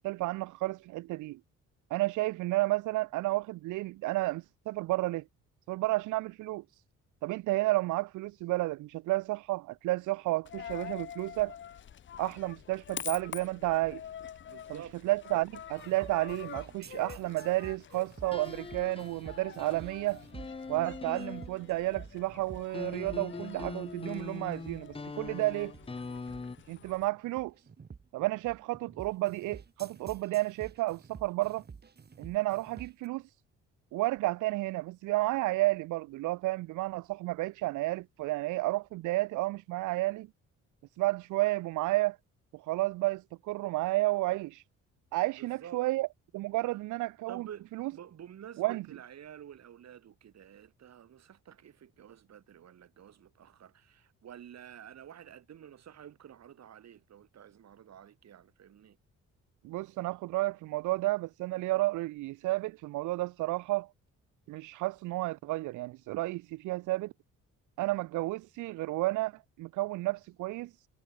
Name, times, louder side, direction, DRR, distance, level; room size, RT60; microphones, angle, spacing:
voice 1, 0.0-1.4 1.9-5.2 5.7-6.8 7.2-11.6 12.2-14.0 15.0-20.2 20.7-25.7 26.7-27.5 28.1-31.6 32.2-33.3 33.9-40.3 41.0-42.2 42.5-44.6 45.1-46.1 46.3-47.5 47.8-47.9 48.6-48.8 59.6-63.9 64.5-67.1 67.8-70.7, right 19 dB, 80° right, 0.5 m, -31 dB
Coin (dropping), 10.5-27.1, left 9 dB, 40° left, 0.6 m, -47 dB
voice 2, 14.4-15.4 45.4-45.8 47.3-59.0, right 9 dB, 60° right, 3.1 m, -50 dB
sound 1, 15.8-33.1, right 5 dB, 35° right, 1.8 m, -50 dB
sound 2, 18.3-21.8 22.7-26.6, left 4 dB, 20° left, 0.9 m, -42 dB
cardioid pair, 90°, 30 cm